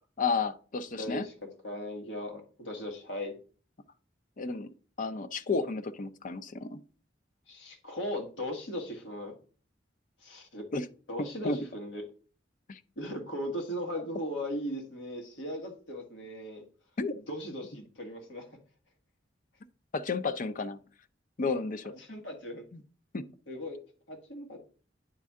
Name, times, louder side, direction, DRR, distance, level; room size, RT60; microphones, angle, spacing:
voice 1, 0.2-1.2 4.4-4.7 5.0-6.8 10.7-10.8 11.4-11.6 12.7-12.8 17.0-17.1 19.9-20.8 21.4-22.0 23.1-23.2, left 4 dB, 45° left, 0.5 m, -32 dB
voice 2, 1.0-1.3 1.6-3.4 7.5-9.3 10.2-10.7 11.1-12.0 13.0-16.6 17.1-18.5 22.0-22.6 23.5-23.8 24.1-24.6, equal, 80° left, 1.8 m, -38 dB
9.5 x 4.3 x 3.6 m
head